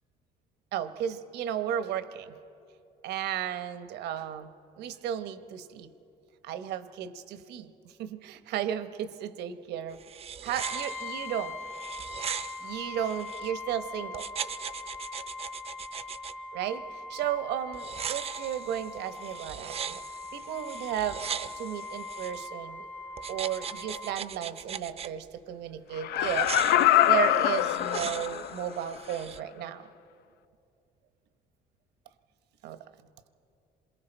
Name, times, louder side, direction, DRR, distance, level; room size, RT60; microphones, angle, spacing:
voice 1, 0.7-2.4 3.0-5.9 6.4-10.0 10.4-11.6 12.6-14.3 16.5-20.0 20.3-22.9 23.3-29.9 32.6-32.8, right 10 dB, 80° right, 11 dB, 0.9 m, -34 dB
sound 1, 9.9-13.5 14.1-16.3 17.7-22.5 23.2-25.1 26.1-29.4, right 8 dB, 35° right, 0.5 m, -39 dB
Brass instrument, 10.6-24.2, left 3 dB, 10° left, 0.7 m, -41 dB
Laughter, 26.0-28.6 29.1-29.2, left 13 dB, 70° left, 0.4 m, -24 dB
27.0 x 22.0 x 4.4 m, 2.6 s
cardioid pair, 110°, 17 cm